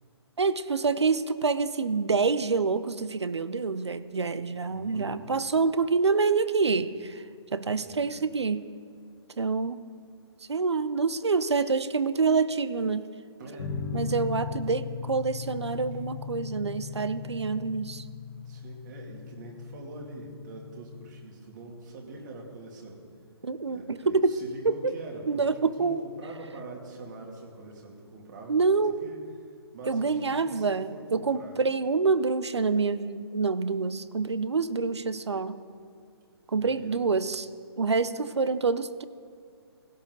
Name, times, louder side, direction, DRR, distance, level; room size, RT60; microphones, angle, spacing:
voice 1, 0.4-7.2 7.5-8.7 9.4-9.8 10.5-13.1 13.9-18.1 23.4-24.3 24.6-24.9 25.3-26.0 28.5-29.0 29.9-35.6 36.5-37.5 37.8-39.0, right 4 dB, 85° right, 14 dB, 0.7 m, -27 dB
voice 2, 4.7-5.2 7.8-8.1 13.4-13.7 18.4-23.0 23.6-28.7 29.0-31.6 36.6-36.9, right 2 dB, 45° right, -1 dB, 2.6 m, -44 dB
sound 1, 13.6-21.2, left 6 dB, 25° left, 1.4 m, -38 dB
16.5 x 10.5 x 3.9 m, 2.3 s
figure-of-eight pair, 145°, 14 cm